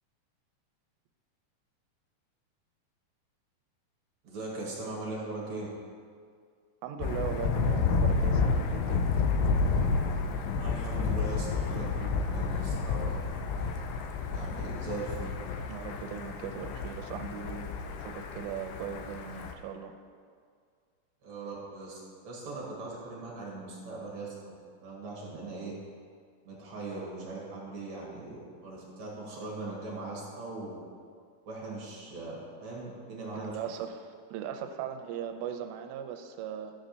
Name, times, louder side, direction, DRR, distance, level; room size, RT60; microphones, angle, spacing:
voice 1, 4.2-5.7 10.6-13.2 14.3-15.3 21.2-24.5 24.8-25.7 26.4-30.8 31.5-33.5, right 2 dB, 50° right, -4 dB, 2.6 m, -40 dB
voice 2, 6.8-9.2 15.7-20.0 33.4-36.7, right 8 dB, 85° right, 6 dB, 2.8 m, -39 dB
Thunder, 7.0-19.5, left 4 dB, 85° left, 3.0 m, -30 dB
13.0 x 5.1 x 6.6 m, 2.1 s
omnidirectional pair, 5.0 m